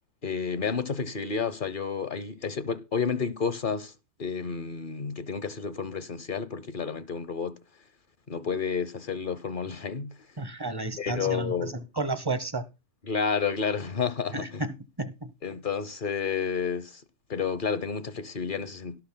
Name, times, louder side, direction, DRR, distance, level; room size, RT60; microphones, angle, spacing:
voice 1, 0.2-3.9 4.2-7.6 8.3-10.1 11.0-11.8 13.0-14.6 15.4-17.0 17.3-19.0, left 6 dB, 45° left, 0.7 m, -30 dB
voice 2, 10.4-12.6 14.3-15.3, right 2 dB, 25° right, 0.6 m, -32 dB
17.5 x 11.5 x 2.2 m
omnidirectional pair, 1.6 m